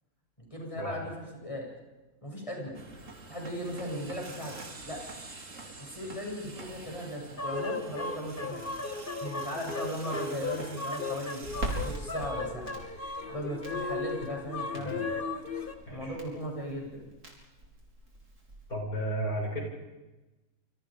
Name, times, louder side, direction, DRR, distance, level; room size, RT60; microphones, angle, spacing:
voice 1, 0.4-1.7 2.2-2.9 3.3-5.0 5.8-8.8 9.2-11.4 11.8-12.8 13.3-15.1 15.9-17.1, equal, 20° left, -1 dB, 7.9 m, -37 dB
sound 1, 2.7-12.0, right 3 dB, 55° right, 2.8 m, -47 dB
sound 2, 7.4-15.7, left 3 dB, 35° left, 1.9 m, -36 dB
Crackle, 11.4-18.7, right 1 dB, 75° right, 5.9 m, -42 dB
voice 2, 15.9-16.2 18.7-19.6, right 1 dB, 75° left, 0 dB, 7.6 m, -34 dB
28.5 x 26.0 x 5.3 m, 1.1 s
omnidirectional pair, 1.6 m